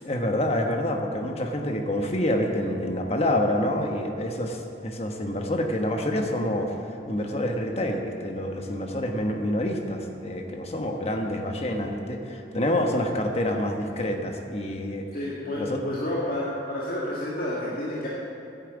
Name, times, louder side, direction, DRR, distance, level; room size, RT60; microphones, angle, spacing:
voice 1, 0.0-15.1 15.6-15.8, left 1 dB, 35° left, 3 dB, 1.2 m, -27 dB
voice 2, 15.1-18.1, left 1 dB, 55° left, -7 dB, 1.9 m, -30 dB
10.0 x 8.6 x 8.2 m, 2.8 s
head